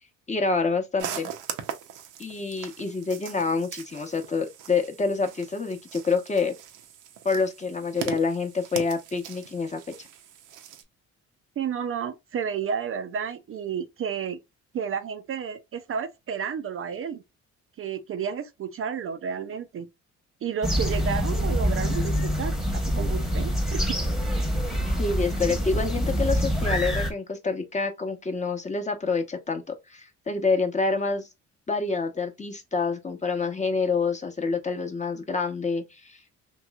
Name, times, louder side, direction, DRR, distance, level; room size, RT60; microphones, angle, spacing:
voice 1, 0.3-1.3 2.2-6.5 7.2-9.8 25.0-31.3 31.7-36.3, left 4 dB, 25° left, 0.8 m, -27 dB
sound 1, 1.0-10.8, right 9 dB, 90° right, 0.7 m, -40 dB
voice 2, 11.6-14.4 14.7-17.2 17.8-19.9 20.4-24.0, right 7 dB, 45° right, 0.4 m, -31 dB
sound 2, 20.6-27.1, equal, ahead, 1.0 m, -25 dB
3.0 x 2.9 x 2.2 m
cardioid pair, 90°, 30 cm